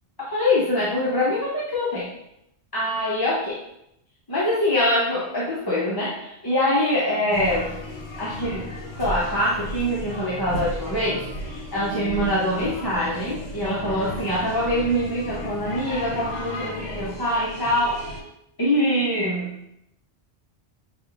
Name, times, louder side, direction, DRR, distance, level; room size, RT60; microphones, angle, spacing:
voice 1, 0.2-2.1 2.7-3.6 4.3-7.8 8.2-8.6 9.0-18.0 18.6-19.6, left 1 dB, 25° left, -8 dB, 0.8 m, -24 dB
sound 1, 7.3-18.2, left 1 dB, 70° left, 1.0 m, -34 dB
6.0 x 2.9 x 2.5 m, 0.79 s
omnidirectional pair, 1.1 m